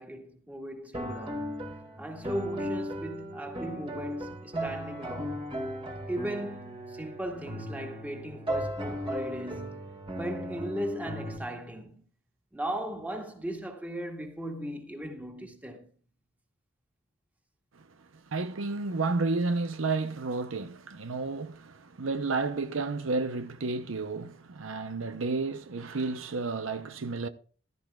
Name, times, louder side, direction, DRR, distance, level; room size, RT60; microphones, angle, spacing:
voice 1, 0.0-1.6 2.0-5.5 6.1-9.9 10.2-12.0 12.5-15.9, right 1 dB, 10° right, 2.0 m, -37 dB
sound 1, 0.9-11.4, equal, 30° right, 2.0 m, -36 dB
voice 2, 18.3-27.3, right 3 dB, 80° right, 0.8 m, -31 dB
15.0 x 13.0 x 2.4 m
head